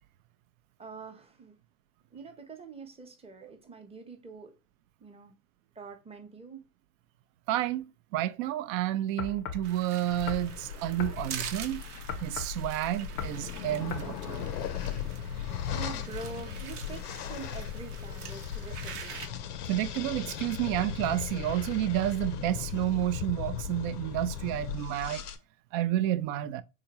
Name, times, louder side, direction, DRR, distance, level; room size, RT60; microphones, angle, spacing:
voice 1, 0.8-1.6 2.1-4.5 5.0-5.4 5.8-6.6 15.1-19.2, right 4 dB, 15° right, 0.7 m, -45 dB
voice 2, 7.5-11.8 12.2-14.5 19.7-25.2 25.7-26.6, right 13 dB, 60° right, 0.5 m, -30 dB
sound 1, 9.2-9.7 10.3-10.5 11.0-11.2 12.1-12.6 13.2-13.4 13.9-14.1, left 7 dB, 30° left, 0.4 m, -37 dB
sound 2, 9.6-19.3, right 8 dB, 80° right, 0.9 m, -45 dB
sound 3, 10.1-25.4, left 9 dB, 90° left, 0.6 m, -37 dB
3.6 x 2.9 x 2.8 m
hypercardioid pair, 95°, 46 cm